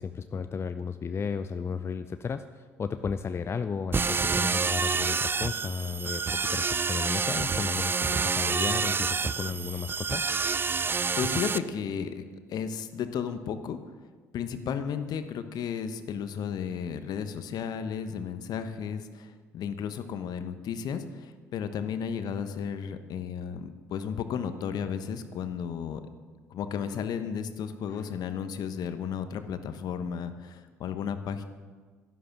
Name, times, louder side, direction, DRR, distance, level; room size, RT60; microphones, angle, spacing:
voice 1, 0.0-10.2 27.9-28.1, left 5 dB, 35° left, 10 dB, 0.6 m, -34 dB
sound 1, 3.9-11.6, right 5 dB, 30° right, 0.5 m, -28 dB
voice 2, 11.2-12.2 12.5-13.8 14.3-26.0 26.5-31.4, left 7 dB, 55° left, 10 dB, 1.1 m, -33 dB
12.0 x 11.5 x 6.0 m, 1.5 s
hypercardioid pair, 55°, 8 cm